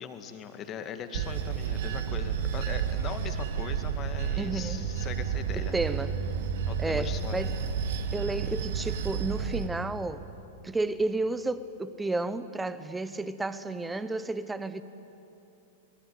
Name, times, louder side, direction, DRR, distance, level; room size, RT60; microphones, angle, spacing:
voice 1, 0.0-5.7 6.7-7.4, left 7 dB, 30° left, 7 dB, 2.1 m, -40 dB
Bell / Train, 1.1-9.7, right 7 dB, 55° right, 1.9 m, -31 dB
voice 2, 4.4-4.9 5.6-6.1 6.8-7.6 8.1-10.2 10.6-14.8, right 2 dB, 10° right, 14 dB, 1.1 m, -32 dB
26.5 x 22.0 x 9.5 m, 2.9 s
figure-of-eight pair, 100°, 0 cm